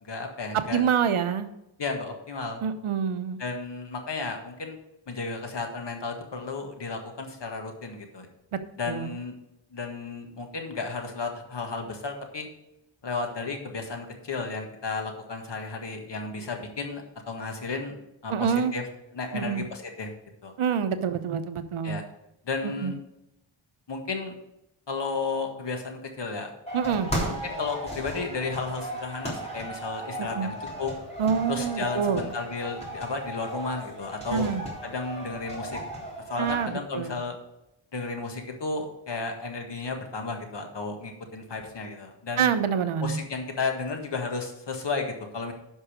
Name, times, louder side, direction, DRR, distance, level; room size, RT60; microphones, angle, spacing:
voice 1, 0.0-0.8 1.8-2.6 3.4-4.8 5.1-8.3 8.8-9.4 9.7-12.5 13.0-18.0 18.2-18.8 19.1-20.1 20.4-20.5 21.8-22.0 22.5-23.0 23.9-24.3 24.9-26.5 27.4-30.9 31.5-34.6 34.8-35.8 36.3-37.4 37.9-42.5 43.0-45.5, left 4 dB, 60° left, 4 dB, 1.8 m, -33 dB
voice 2, 0.7-1.5 2.6-3.4 8.5-8.6 8.9-9.2 18.3-18.7 19.3-19.6 20.6-22.0 22.6-22.9 26.7-27.1 30.2-30.5 31.2-32.3 34.3-34.6 36.4-37.2 42.4-43.2, right 7 dB, 85° right, 10 dB, 0.9 m, -26 dB
sound 1, 26.7-36.7, right 1 dB, 15° left, 3.4 m, -36 dB
11.0 x 5.5 x 5.1 m, 0.87 s
wide cardioid pair, 100°, 48 cm